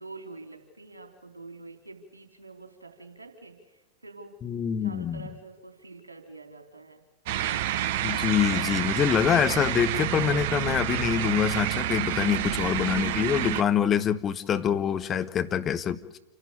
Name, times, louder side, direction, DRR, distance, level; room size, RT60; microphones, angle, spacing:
voice 1, 0.0-4.4 4.8-7.0, right 3 dB, 80° right, 4 dB, 3.8 m, -46 dB
voice 2, 4.4-5.2 8.0-16.2, left 9 dB, 25° left, 9 dB, 1.2 m, -25 dB
sound 1, 7.3-13.6, right 12 dB, 50° right, 0.6 m, -28 dB
28.0 x 12.0 x 8.8 m, 1.1 s
figure-of-eight pair, 90°, 0 cm